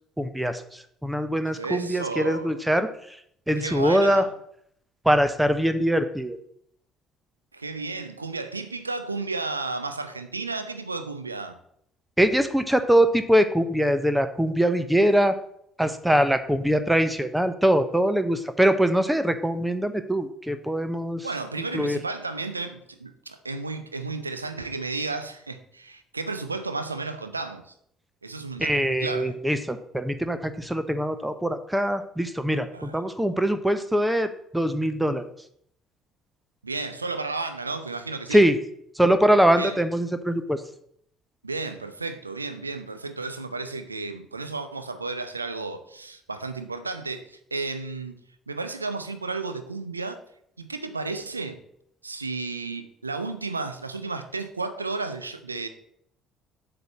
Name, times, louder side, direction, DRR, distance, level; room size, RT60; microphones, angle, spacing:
voice 1, 0.2-2.9 3.5-4.2 5.0-6.4 12.2-15.4 15.8-21.3 21.7-22.0 28.6-34.3 34.5-35.2 38.3-38.6 39.0-40.6, equal, 5° right, 0.8 m, -22 dB
voice 2, 1.5-2.6 3.6-4.3 7.5-11.6 21.2-27.7 28.2-29.4 32.7-33.0 36.6-38.4 39.5-39.8 41.4-48.2 48.5-50.2 50.6-51.6 52.0-55.7, right 3 dB, 85° right, 0.6 m, -33 dB
7.9 x 5.0 x 7.3 m
figure-of-eight pair, 55°, 0 cm